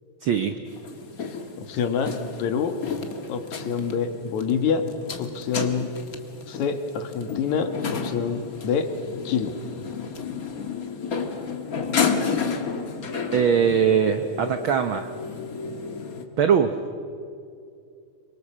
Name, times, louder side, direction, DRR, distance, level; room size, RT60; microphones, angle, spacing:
voice 1, 0.2-0.6 13.3-15.1 16.4-16.7, right 7 dB, 85° right, 8 dB, 1.1 m, -21 dB
sound 1, 0.7-16.2, left 5 dB, 40° left, 1.4 m, -32 dB
voice 2, 1.2-2.1 2.4-2.8 3.3-4.9 5.2-5.9 6.5-7.7 8.0-8.9 9.2-9.5, left 6 dB, 70° left, 7 dB, 2.7 m, -26 dB
26.0 x 23.5 x 7.4 m, 2.4 s
omnidirectional pair, 3.6 m